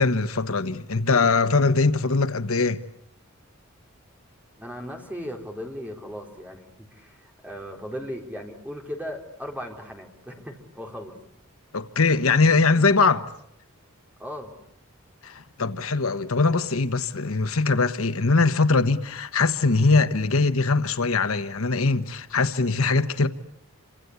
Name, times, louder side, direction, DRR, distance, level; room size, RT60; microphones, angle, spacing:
voice 1, 0.0-2.8 11.7-13.3 15.2-23.3, left 3 dB, 70° left, 1.1 m, -21 dB
voice 2, 4.6-11.2 14.2-14.5, equal, 5° right, 4.3 m, -37 dB
28.0 x 26.0 x 8.2 m
head